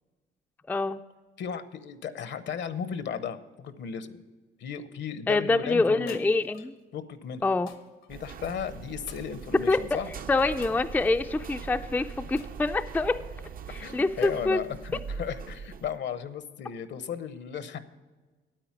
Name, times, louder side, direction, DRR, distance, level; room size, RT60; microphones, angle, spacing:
voice 1, 0.7-1.0 5.3-6.7 7.4-7.7 9.7-9.8 10.3-13.2 13.7-14.6, left 3 dB, 10° left, 7 dB, 0.3 m, -26 dB
voice 2, 1.4-4.2 4.6-6.2 6.9-7.5 8.1-10.1 13.8-17.8, left 7 dB, 65° left, 13 dB, 0.8 m, -35 dB
sound 1, 6.1-6.8 7.7-8.1 9.1-9.9 10.6-11.4 12.4-13.2 14.2-14.8, left 7 dB, 85° left, 1.1 m, -52 dB
sound 2, 8.1-16.0, right 6 dB, 45° right, 0.5 m, -41 dB
8.9 x 8.8 x 5.8 m, 1.3 s
cardioid pair, 90°, 20 cm